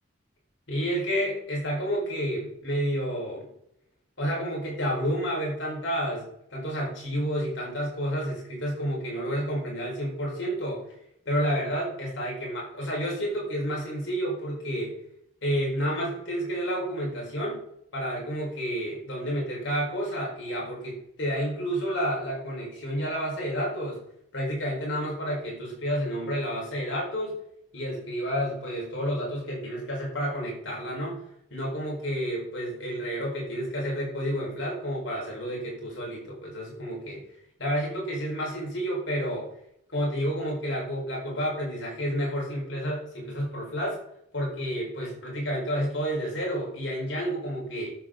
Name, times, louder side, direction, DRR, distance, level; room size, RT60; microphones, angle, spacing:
voice 1, 0.7-3.5 4.2-10.8 11.3-14.9 15.4-17.6 17.9-24.0 24.3-27.3 27.7-31.2 31.5-37.2 37.6-39.5 39.9-44.0 44.3-47.9, equal, 70° left, -3 dB, 4.4 m, -30 dB
12.5 x 6.8 x 3.8 m, 0.72 s
head